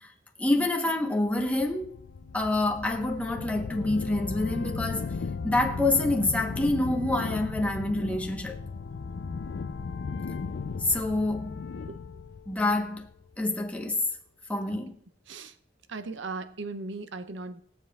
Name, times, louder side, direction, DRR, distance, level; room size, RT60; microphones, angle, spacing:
voice 1, 0.4-2.0 2.3-5.2 5.4-8.6 10.8-11.6 12.5-13.1 13.4-14.0 14.5-14.9, left 2 dB, 10° left, 1.0 m, -27 dB
sound 1, 1.4-13.4, left 4 dB, 80° left, 0.4 m, -36 dB
voice 2, 15.9-17.6, right 3 dB, 90° right, 0.6 m, -37 dB
21.0 x 7.2 x 2.4 m
head